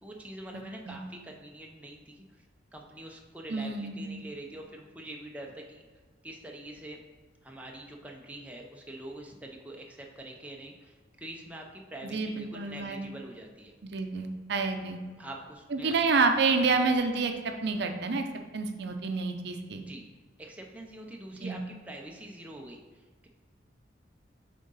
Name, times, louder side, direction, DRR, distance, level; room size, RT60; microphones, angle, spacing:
voice 1, 0.0-2.4 2.7-5.8 6.2-7.0 7.4-13.7 15.2-16.0 19.7-20.1 20.4-23.3, right 1 dB, 10° right, 0 dB, 0.6 m, -45 dB
voice 2, 0.5-1.0 3.5-4.1 12.0-13.0 13.8-15.0 15.7-17.3 17.6-18.3 18.5-19.8 21.4-21.6, right 4 dB, 65° right, 5 dB, 0.6 m, -28 dB
7.7 x 3.7 x 4.0 m, 1.4 s
head